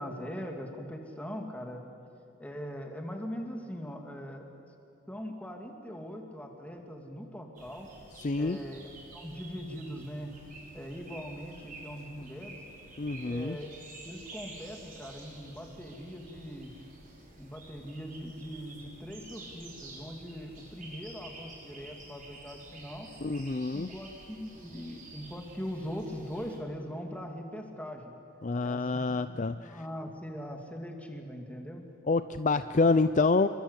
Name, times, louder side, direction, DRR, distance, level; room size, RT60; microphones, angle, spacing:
voice 1, 0.0-1.8 2.4-4.5 5.1-7.9 8.3-10.4 10.7-12.6 13.3-13.7 14.0-16.7 17.4-23.1 23.7-28.1 28.6-31.8, equal, 5° left, 2 dB, 2.7 m, -41 dB
sound 1, 7.6-26.6, right 2 dB, 40° right, 5.1 m, -50 dB
voice 2, 8.2-8.6 13.0-13.6 23.2-23.9 28.4-29.8 32.1-33.5, left 3 dB, 35° left, 11 dB, 0.5 m, -27 dB
28.0 x 23.5 x 8.3 m, 2.8 s
head